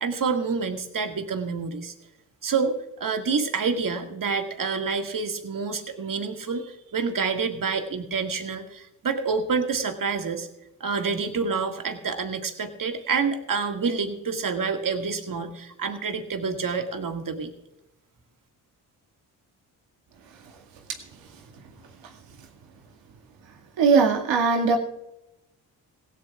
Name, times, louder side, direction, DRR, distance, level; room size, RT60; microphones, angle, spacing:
voice 1, 0.0-1.9 2.4-10.5 10.8-17.5, right 5 dB, 45° right, 5 dB, 1.9 m, -28 dB
voice 2, 23.8-24.8, right 5 dB, 70° right, 2 dB, 2.1 m, -19 dB
17.0 x 16.5 x 2.4 m, 0.88 s
hypercardioid pair, 50°, 46 cm